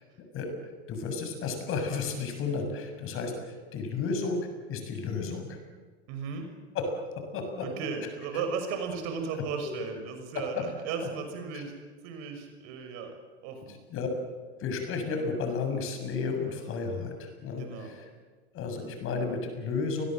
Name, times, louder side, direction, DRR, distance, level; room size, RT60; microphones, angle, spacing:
voice 1, 0.9-4.4 4.7-5.6 6.8-6.9 7.3-7.7 13.9-14.1 14.6-17.9 18.5-20.1, left 4 dB, 40° left, 6 dB, 6.9 m, -32 dB
voice 2, 6.1-6.5 7.6-11.7 12.0-13.2 13.4-13.8 17.5-17.9, right 5 dB, 55° right, 6 dB, 6.2 m, -35 dB
29.0 x 21.5 x 7.7 m, 1.4 s
hypercardioid pair, 90°, 33 cm